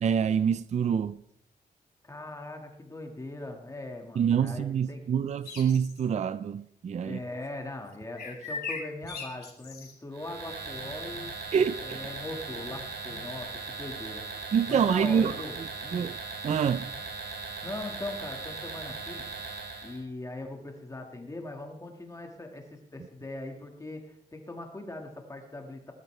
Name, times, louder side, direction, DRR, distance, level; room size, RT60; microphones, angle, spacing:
voice 1, 0.0-1.2 4.2-7.2 11.5-12.0 14.5-15.3 15.9-16.2 16.4-16.9, right 7 dB, 45° right, 0.4 m, -26 dB
voice 2, 2.0-5.1 7.0-11.4 11.8-16.1 17.6-19.3 19.8-25.9, left 2 dB, 20° left, 1.7 m, -40 dB
sound 1, 5.4-6.0 8.2-9.9, left 4 dB, 75° left, 3.3 m, -38 dB
sound 2, 10.1-20.0, right 4 dB, 85° right, 2.8 m, -39 dB
Telephone, 10.7-11.4 12.6-13.4 14.6-15.3 16.5-17.0, left 7 dB, 40° left, 0.9 m, -52 dB
20.0 x 12.0 x 3.3 m
wide cardioid pair, 145°, 17 cm